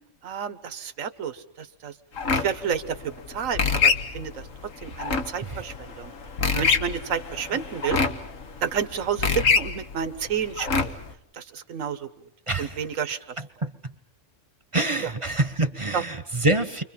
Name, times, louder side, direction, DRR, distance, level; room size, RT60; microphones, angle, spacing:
voice 1, 0.2-1.9 2.3-4.5 4.8-6.1 6.5-8.0 8.6-10.9 11.3-12.1 12.6-13.2 15.9-16.0, right 7 dB, 80° right, 11 dB, 1.5 m, -30 dB
sound 1, 2.2-11.1, left 5 dB, 75° left, 1.9 m, -26 dB
voice 2, 12.5-12.9 13.4-13.9 14.7-16.8, right 2 dB, 25° right, 11 dB, 1.0 m, -26 dB
30.0 x 24.5 x 5.7 m, 0.74 s
omnidirectional pair, 1.4 m